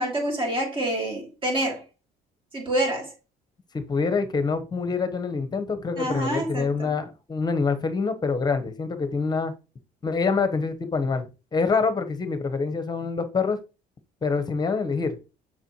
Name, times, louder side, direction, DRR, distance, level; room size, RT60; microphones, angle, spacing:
voice 1, 0.0-1.8 2.5-3.1 6.0-7.0, right 1 dB, 30° right, 2.8 m, -27 dB
voice 2, 3.7-9.5 10.0-13.6 14.2-15.2, left 4 dB, 25° left, 1.0 m, -26 dB
6.6 x 4.7 x 3.0 m
cardioid pair, 110°, 17 cm